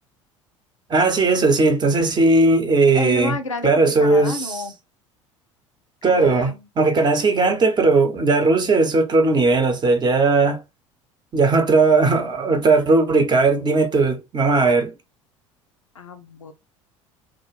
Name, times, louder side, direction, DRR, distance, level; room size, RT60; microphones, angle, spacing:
voice 1, 0.9-3.3 3.6-4.6 6.0-10.6 11.3-14.9, right 3 dB, 25° right, 0.8 m, -18 dB
voice 2, 2.9-4.7 6.0-6.6 6.9-7.3 16.0-16.5, left 3 dB, 80° left, 0.4 m, -31 dB
2.4 x 2.1 x 3.1 m
figure-of-eight pair, 65°, 16 cm